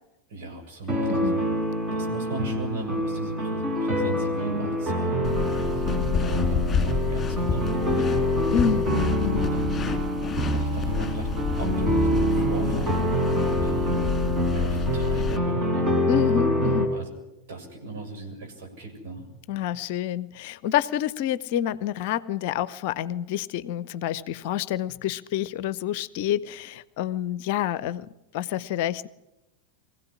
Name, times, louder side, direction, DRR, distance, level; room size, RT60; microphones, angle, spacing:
voice 1, 0.3-1.5 1.9-8.0 9.5-9.8 10.5-13.0 13.5-13.9 14.5-15.9 16.9-19.3, right 3 dB, 55° right, 4 dB, 7.0 m, -37 dB
sound 1, 0.9-16.9, equal, 20° right, 5.2 m, -25 dB
Rozamiento ropa, 5.2-15.4, left 6 dB, 20° left, 3.1 m, -30 dB
voice 2, 8.5-9.5 16.1-16.9 19.5-29.1, left 11 dB, 50° left, 18 dB, 0.8 m, -28 dB
24.5 x 16.0 x 10.0 m, 0.95 s
figure-of-eight pair, 90°, 0 cm